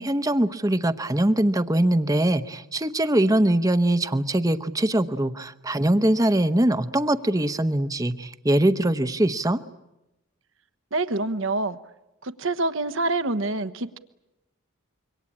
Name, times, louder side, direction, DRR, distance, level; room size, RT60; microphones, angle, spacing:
voice 1, 0.0-9.6, right 1 dB, 15° right, 12 dB, 0.9 m, -22 dB
voice 2, 10.9-11.8 12.2-14.0, right 2 dB, 70° right, 12 dB, 1.2 m, -26 dB
26.5 x 24.0 x 8.6 m, 0.96 s
head